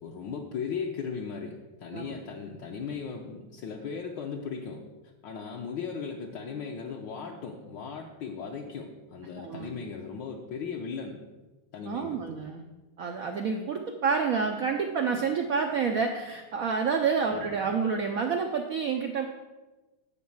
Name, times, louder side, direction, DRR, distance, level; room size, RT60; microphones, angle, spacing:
voice 1, 0.0-4.8 5.2-11.2 11.7-12.3 17.3-17.5, left 6 dB, 70° left, 0 dB, 1.4 m, -37 dB
voice 2, 9.4-9.8 11.9-12.6 13.0-19.3, right 5 dB, 80° right, 4 dB, 0.7 m, -28 dB
9.5 x 4.6 x 7.2 m, 1.1 s
omnidirectional pair, 2.3 m